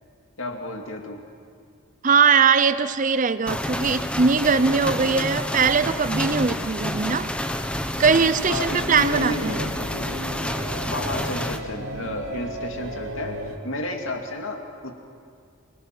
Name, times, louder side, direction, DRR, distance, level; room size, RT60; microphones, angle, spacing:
voice 1, 0.4-1.2 8.5-10.1 10.9-14.9, left 1 dB, 65° left, 2.5 m, -32 dB
voice 2, 2.0-7.3 8.0-9.6, right 5 dB, 35° right, 0.5 m, -20 dB
sound 1, 3.5-11.6, left 1 dB, 5° left, 0.9 m, -29 dB
sound 2, 8.3-13.6, right 1 dB, 70° right, 2.7 m, -36 dB
28.0 x 19.5 x 6.0 m
head